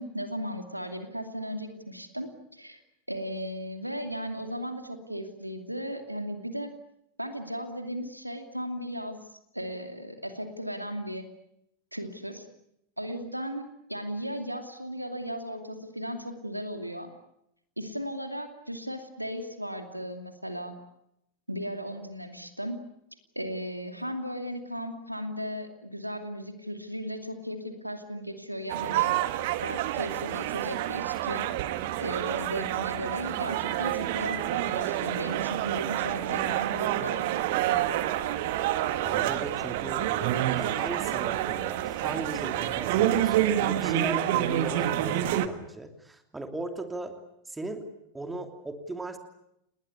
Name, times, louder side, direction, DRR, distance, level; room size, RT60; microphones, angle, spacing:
voice 1, 0.0-2.8 3.1-6.7 7.2-11.3 11.9-12.5 13.0-17.1 17.8-20.7 21.5-22.8 23.3-29.1 29.6-31.5 32.0-37.5, equal, 90° right, 7 dB, 2.7 m, -36 dB
sound 1, 28.7-45.5, right 13 dB, 50° right, 1.7 m, -28 dB
voice 2, 39.0-47.1 47.5-47.9 48.1-49.2, right 2 dB, 10° right, 6 dB, 3.0 m, -37 dB
29.5 x 20.5 x 8.5 m, 0.80 s
figure-of-eight pair, 90°, 0 cm